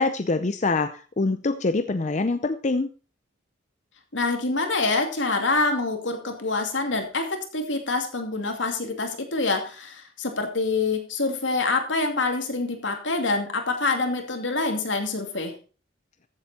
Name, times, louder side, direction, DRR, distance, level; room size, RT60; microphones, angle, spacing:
voice 1, 0.0-2.9, left 3 dB, 40° left, 9 dB, 0.6 m, -24 dB
voice 2, 4.1-15.5, left 3 dB, 75° left, 5 dB, 2.5 m, -26 dB
14.5 x 8.0 x 4.2 m, 0.36 s
head